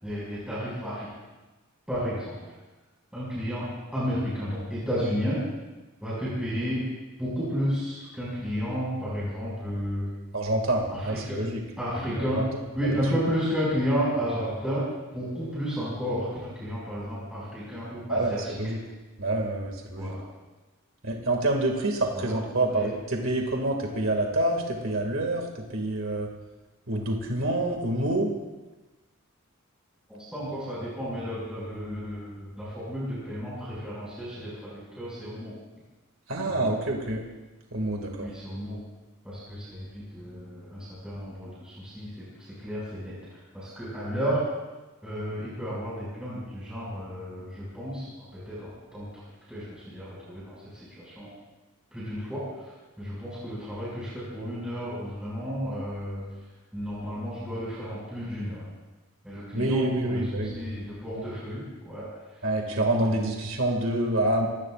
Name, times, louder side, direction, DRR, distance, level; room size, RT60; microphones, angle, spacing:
voice 1, 0.0-1.1 1.9-2.4 3.1-5.4 6.0-6.8 7.2-10.1 10.9-11.4 11.8-12.4 12.7-14.8 15.1-18.5 20.0-20.2 22.1-22.3 22.7-22.9 30.1-35.5 36.4-36.7 38.0-38.8 39.2-43.1 43.5-44.5 45.0-49.1 49.5-51.3 51.9-52.7 53.0-56.3 56.7-58.7 59.2-62.1 62.7-63.2, equal, 5° right, -9 dB, 5.9 m, -32 dB
voice 2, 10.3-11.6 12.2-12.4 18.1-18.8 19.2-20.1 21.0-25.4 25.7-26.3 26.9-28.3 36.3-37.2 37.7-38.3 59.5-60.8 62.4-64.5, right 1 dB, 60° right, 1 dB, 2.3 m, -27 dB
27.0 x 18.0 x 2.5 m, 1.2 s
head